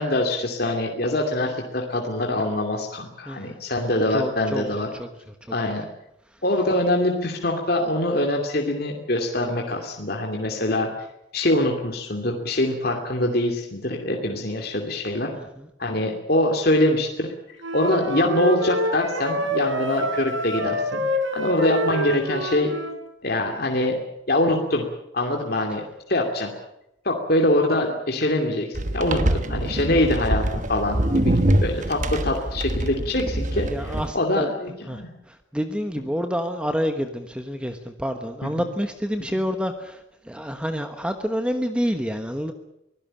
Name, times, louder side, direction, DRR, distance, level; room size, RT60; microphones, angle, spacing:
voice 1, 0.0-4.9 5.5-5.9 6.4-10.9 11.3-15.3 15.8-17.3 17.7-21.0 21.3-22.7 23.2-24.0 24.3-24.8 25.1-26.5 27.0-30.4 30.7-31.3 31.6-33.7 34.1-35.1, left 1 dB, 50° left, 1 dB, 2.6 m, -24 dB
voice 2, 3.2-3.6 4.1-5.5 6.3-6.4 15.3-15.7 29.2-29.4 33.6-34.5 34.9-42.5, equal, 5° right, 7 dB, 1.2 m, -28 dB
Wind instrument woodwind instrument, 17.6-23.0, equal, 85° right, 4.3 m, -27 dB
sound 1, 28.7-34.1, right 1 dB, 40° right, 1.2 m, -24 dB
24.5 x 17.0 x 8.9 m, 0.84 s
head